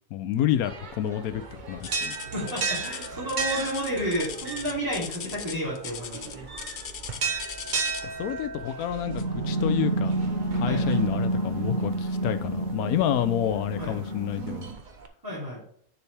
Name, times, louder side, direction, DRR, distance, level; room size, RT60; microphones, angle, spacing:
voice 1, 0.1-2.2 8.0-10.2 10.5-14.7, left 11 dB, 85° left, 11 dB, 1.1 m, -29 dB
sound 1, 0.6-15.1, right 4 dB, 40° right, 0.9 m, -36 dB
sound 2, 1.8-8.2 9.2-9.4 10.0-10.1 10.8-10.9, left 7 dB, 55° left, 0.6 m, -39 dB
voice 2, 2.3-6.4 10.6-11.0 13.8-14.0 15.2-15.6, equal, 15° right, -9 dB, 3.1 m, -31 dB
sound 3, 9.1-14.7, right 2 dB, 70° right, 1.7 m, -28 dB
7.0 x 6.7 x 3.3 m, 0.64 s
omnidirectional pair, 1.5 m